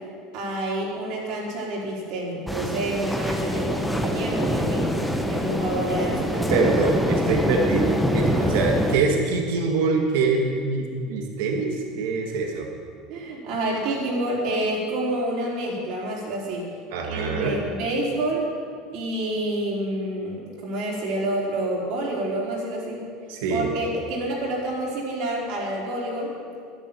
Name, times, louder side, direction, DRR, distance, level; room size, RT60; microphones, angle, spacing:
voice 1, 0.3-4.9 5.3-6.5 8.3-8.6 13.1-16.7 17.0-18.5 18.9-23.0 23.5-26.3, right 1 dB, 65° right, -4 dB, 4.4 m, -28 dB
sound 1, 2.5-9.0, equal, ahead, 1.0 m, -25 dB
voice 2, 6.5-12.7 16.9-17.6 23.3-23.7, right 3 dB, 80° right, 2 dB, 1.7 m, -24 dB
11.0 x 11.0 x 7.6 m, 2.2 s
supercardioid pair, 135°, 0 cm